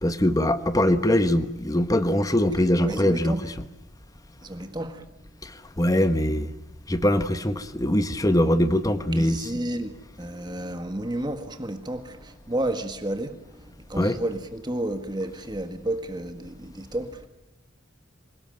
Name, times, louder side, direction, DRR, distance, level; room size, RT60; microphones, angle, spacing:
voice 1, 0.0-3.4 5.4-6.5 6.9-9.4 14.0-14.1, left 1 dB, 15° left, 1.2 m, -22 dB
voice 2, 2.8-3.4 4.4-5.0 9.1-17.3, right 1 dB, 20° right, 1.7 m, -32 dB
26.5 x 18.5 x 9.1 m
head